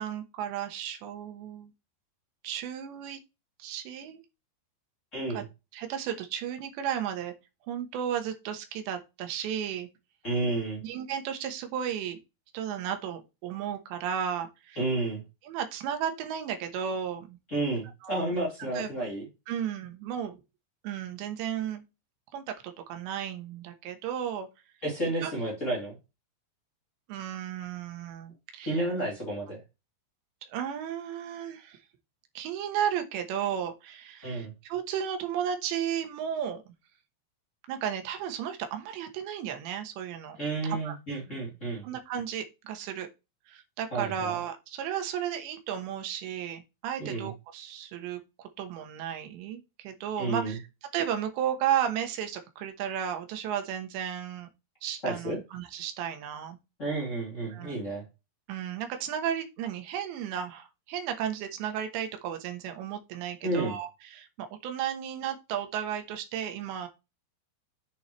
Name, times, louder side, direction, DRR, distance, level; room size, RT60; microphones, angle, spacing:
voice 1, 0.0-1.7 2.4-3.2 3.6-4.2 5.3-5.4 5.7-7.3 7.7-9.9 10.8-12.2 12.5-14.8 15.4-17.4 18.0-18.3 18.7-18.9 19.5-20.4 20.8-21.8 22.3-24.5 25.2-25.3 27.1-28.8 30.5-31.8 32.3-36.6 37.7-40.4 40.8-41.0 41.8-43.1 43.5-50.6 50.9-54.5 54.8-56.6 57.5-57.7 58.5-66.9, right 9 dB, 80° right, 6 dB, 3.3 m, -34 dB
voice 2, 5.1-5.5 10.2-10.8 14.8-15.2 17.5-19.3 24.8-26.0 28.6-29.6 34.2-34.5 40.4-41.8 43.9-44.3 47.0-47.3 50.2-50.6 55.0-55.4 56.8-58.0 63.4-63.8, right 2 dB, 20° left, -4 dB, 2.6 m, -31 dB
8.4 x 7.0 x 3.2 m, 0.26 s
omnidirectional pair, 5.2 m